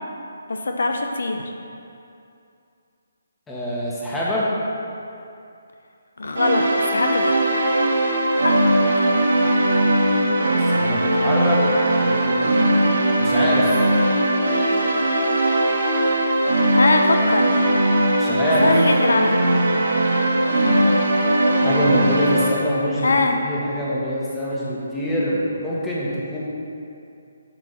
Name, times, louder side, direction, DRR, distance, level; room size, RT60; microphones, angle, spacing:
voice 1, 0.5-1.4 6.2-6.6 6.9-7.3 8.4-8.6 16.7-17.8 18.6-19.6 23.0-23.4, left 3 dB, 80° left, 4 dB, 0.7 m, -22 dB
voice 2, 3.5-4.5 10.6-11.6 12.0-12.5 13.2-13.9 18.2-18.7 21.6-26.4, equal, 10° left, -7 dB, 1.5 m, -25 dB
sound 1, 6.3-22.5, right 1 dB, 80° right, 2.2 m, -19 dB
8.9 x 6.3 x 4.2 m, 2.6 s
hypercardioid pair, 160°, 0 cm